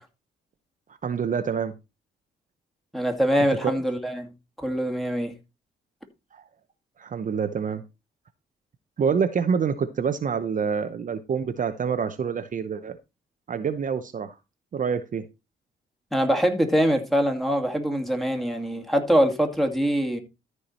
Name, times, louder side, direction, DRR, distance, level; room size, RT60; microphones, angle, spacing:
voice 1, 1.0-1.7 3.6-3.7 6.3-6.4 7.0-7.8 9.0-13.0 13.5-14.4 14.7-15.3, right 6 dB, 40° right, 0.8 m, -26 dB
voice 2, 2.9-4.3 4.6-5.3 16.1-20.2, equal, ahead, 2.3 m, -23 dB
13.5 x 4.6 x 4.3 m
cardioid pair, 90°, 20 cm